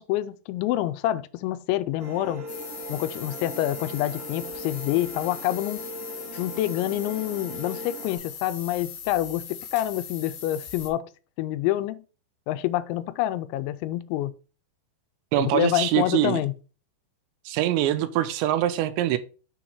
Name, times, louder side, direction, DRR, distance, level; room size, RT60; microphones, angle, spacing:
voice 1, 0.0-2.4 2.9-5.8 6.4-11.1 11.4-12.0 12.5-14.3 15.4-16.5, left 14 dB, 85° left, 2.9 m, -27 dB
sound 1, 2.0-8.2, right 1 dB, 50° right, 3.5 m, -40 dB
sound 2, 2.5-10.9, left 7 dB, 65° left, 2.7 m, -40 dB
voice 2, 15.3-16.4 17.5-19.2, right 13 dB, 90° right, 2.9 m, -24 dB
7.1 x 3.9 x 4.5 m
omnidirectional pair, 5.2 m